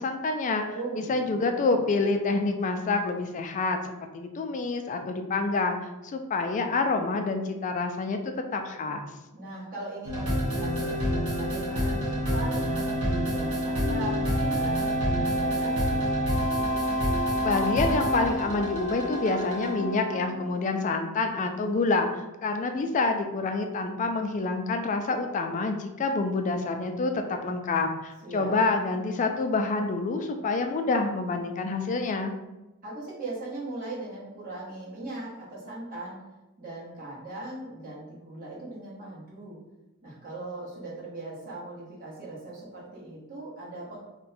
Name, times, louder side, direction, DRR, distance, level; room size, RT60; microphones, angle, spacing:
voice 1, 0.0-0.6 1.1-3.8 4.1-5.8 6.0-8.2 8.5-9.1 17.4-32.4, left 3 dB, 35° left, 5 dB, 0.3 m, -27 dB
voice 2, 0.7-1.9 9.3-16.0 28.2-28.6 32.8-36.2 36.6-39.6 40.0-44.0, right 2 dB, 40° right, -6 dB, 1.1 m, -39 dB
sound 1, 10.0-20.5, equal, 70° right, 0.8 m, -27 dB
2.6 x 2.2 x 4.0 m, 0.99 s
head